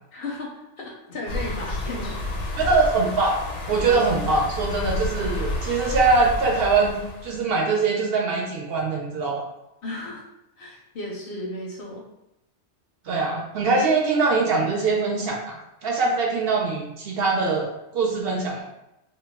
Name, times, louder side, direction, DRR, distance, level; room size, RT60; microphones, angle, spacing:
voice 1, 0.1-2.2 9.8-10.2 10.6-12.1, left 2 dB, 60° left, -2 dB, 0.7 m, -34 dB
sound 1, 1.3-7.4, left 2 dB, 85° left, 0.9 m, -30 dB
voice 2, 2.6-3.4 3.7-9.5 13.1-18.6, right 3 dB, 65° right, -1 dB, 0.7 m, -23 dB
2.3 x 2.1 x 3.3 m, 0.88 s
omnidirectional pair, 1.2 m